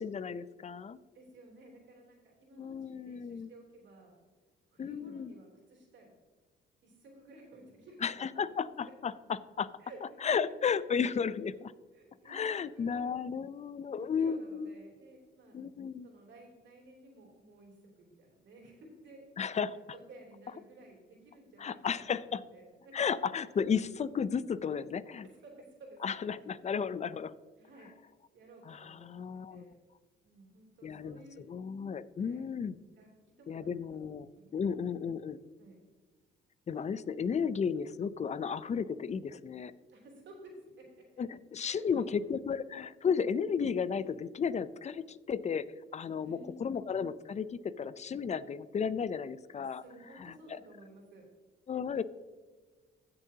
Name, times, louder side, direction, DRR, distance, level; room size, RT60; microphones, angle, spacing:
voice 1, 0.0-1.0 2.6-3.5 4.8-5.3 8.0-9.1 9.6-9.7 10.2-11.7 12.3-14.7 15.5-16.1 19.4-19.7 21.6-22.4 22.9-25.3 26.0-27.3 28.7-29.7 30.8-31.2 31.5-32.7 33.5-35.4 36.7-39.7 41.2-45.6 45.9-49.8 50.2-50.6 51.7-52.0, left 6 dB, 35° left, 16 dB, 0.5 m, -34 dB
voice 2, 1.1-4.2 4.7-6.1 6.8-8.5 8.8-8.9 9.8-10.5 10.8-10.9 11.9-13.1 13.9-15.6 16.0-19.2 19.7-19.8 20.1-22.9 25.2-26.0 26.3-26.5 27.6-29.2 29.5-29.8 30.2-31.4 32.2-32.4 33.0-33.8 34.3-34.8 35.3-35.8 39.9-40.8 41.6-42.1 46.2-46.6 49.7-51.3, right 2 dB, 65° right, -1 dB, 3.3 m, -55 dB
16.0 x 6.8 x 2.8 m, 1.4 s
cardioid pair, 90°, 20 cm